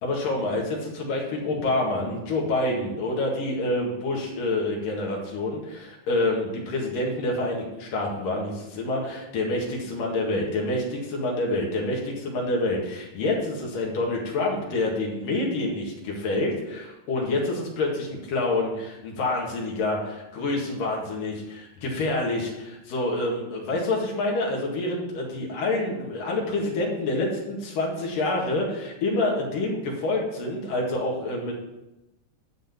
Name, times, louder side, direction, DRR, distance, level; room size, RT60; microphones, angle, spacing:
voice 1, 0.0-31.5, left 2 dB, 90° left, -1 dB, 3.6 m, -27 dB
11.5 x 4.2 x 7.2 m, 0.95 s
omnidirectional pair, 3.8 m